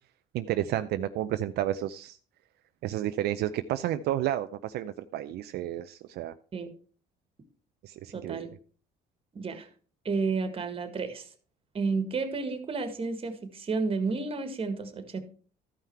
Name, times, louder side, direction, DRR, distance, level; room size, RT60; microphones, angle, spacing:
voice 1, 0.3-2.2 2.8-6.3 7.8-8.5, right 12 dB, 75° right, 9 dB, 0.5 m, -31 dB
voice 2, 8.1-8.5 9.3-9.7 10.0-11.3 11.7-15.2, right 4 dB, 35° right, 9 dB, 1.7 m, -31 dB
13.0 x 5.8 x 4.6 m, 0.41 s
cardioid pair, 110°, 17 cm